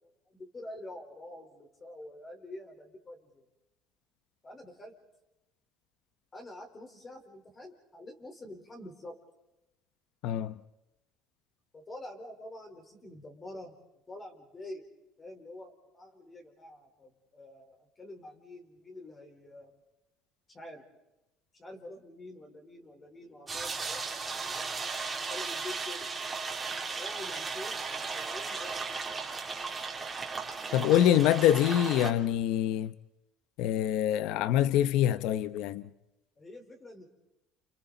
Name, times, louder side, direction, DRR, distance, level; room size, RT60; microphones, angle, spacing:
voice 1, 0.0-3.5 4.4-4.9 6.3-9.1 11.7-13.8 14.1-14.8 15.2-19.8 20.5-20.8 21.5-24.7 25.1-26.1 27.0-28.8 36.4-37.1, left 1 dB, 25° left, 4.1 m, -47 dB
voice 2, 10.2-10.5 30.7-32.9 33.6-35.8, left 11 dB, 70° left, 0.8 m, -25 dB
sound 1, 23.5-32.1, right 4 dB, 20° right, 3.1 m, -36 dB
29.5 x 29.0 x 4.0 m
cardioid pair, 115°, 0 cm